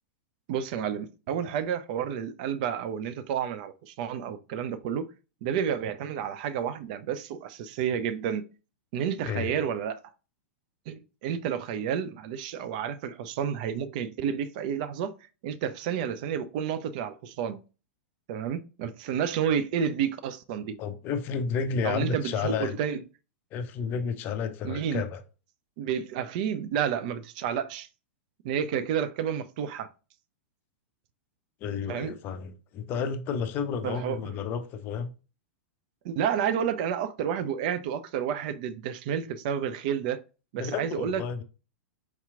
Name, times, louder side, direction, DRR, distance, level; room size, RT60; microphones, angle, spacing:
voice 1, 0.5-5.1 5.4-8.4 8.9-10.0 10.9-15.1 15.4-17.6 18.3-20.8 21.8-23.0 24.6-25.1 25.8-27.9 28.4-29.9 31.9-32.1 33.8-34.2 36.0-40.2 40.5-41.4, right 8 dB, 45° right, 0.3 m, -30 dB
voice 2, 9.3-9.6 20.8-22.8 23.5-25.2 31.6-35.1 40.6-41.4, left 6 dB, 30° left, 0.4 m, -31 dB
4.6 x 2.8 x 2.4 m
figure-of-eight pair, 95°, 6 cm